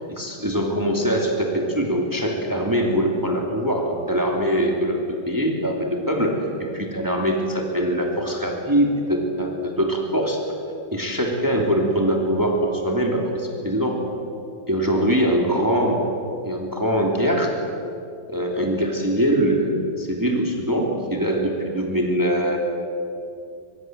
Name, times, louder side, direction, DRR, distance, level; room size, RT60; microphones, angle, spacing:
voice 1, 0.1-10.4 10.9-14.0 14.7-16.1 16.4-17.5 18.3-22.6, equal, 10° right, 1 dB, 2.9 m, -22 dB
24.5 x 22.0 x 8.0 m, 2.4 s
omnidirectional pair, 2.0 m